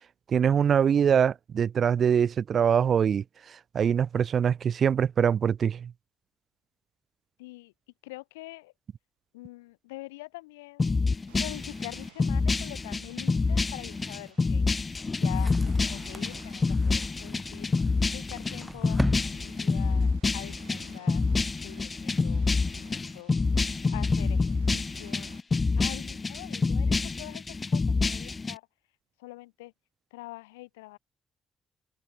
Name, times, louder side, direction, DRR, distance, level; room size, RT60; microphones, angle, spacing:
voice 1, 0.3-3.2 3.7-5.9, right 8 dB, 55° right, 0.4 m, -23 dB
voice 2, 7.4-7.7 8.0-8.7 9.3-10.9 11.4-14.7 15.2-17.7 18.1-21.2 21.6-22.5 22.7-23.3 23.9-25.3 25.8-28.7 29.2-29.7 30.1-31.0, left 21 dB, 90° left, 2.4 m, -45 dB
sound 1, 10.8-28.5, left 4 dB, 35° left, 0.8 m, -27 dB
sound 2, 11.3-25.4, right 33 dB, 85° right, 5.9 m, -58 dB
sound 3, 15.3-20.3, right 1 dB, 5° right, 0.5 m, -38 dB
open air
hypercardioid pair, 45°, 0 cm